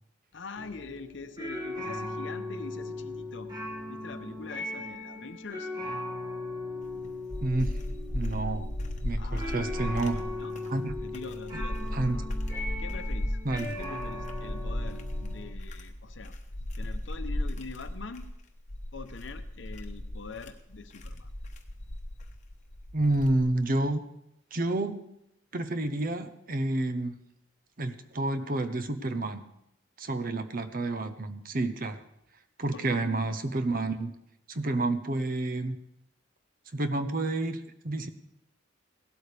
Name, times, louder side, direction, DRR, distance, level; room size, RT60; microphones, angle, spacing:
voice 1, 0.3-3.5 3.8-5.7 9.1-10.5 11.0-12.3 12.8-13.4 13.8-16.4 16.8-18.3 18.9-21.3 32.7-33.0, left 4 dB, 65° left, 9 dB, 0.8 m, -44 dB
sound 1, 0.5-15.5, left 2 dB, 20° right, 2.0 m, -38 dB
sound 2, 6.8-23.7, left 1 dB, 40° left, 1.0 m, -36 dB
voice 2, 7.4-7.8 8.1-8.7 9.0-10.2 10.7-10.9 11.9-12.2 13.4-13.8 22.9-24.0 24.5-25.0 25.5-27.2 27.8-29.4 30.0-32.0 32.6-34.1 34.5-35.8 36.7-38.1, right 2 dB, 45° right, 9 dB, 0.8 m, -29 dB
17.5 x 12.5 x 3.4 m, 0.81 s
head